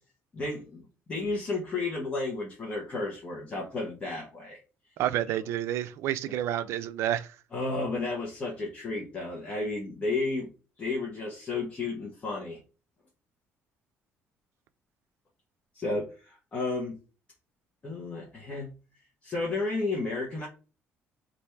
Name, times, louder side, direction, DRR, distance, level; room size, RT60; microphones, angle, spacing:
voice 1, 0.3-0.8 1.1-4.6 6.3-6.4 7.5-10.5 10.8-12.6 15.7-17.0 17.8-18.7 19.2-20.5, left 3 dB, 25° left, 0.9 m, -32 dB
voice 2, 5.0-7.4, right 11 dB, 75° right, 0.3 m, -29 dB
3.3 x 2.5 x 4.4 m
cardioid pair, 145°, 5 cm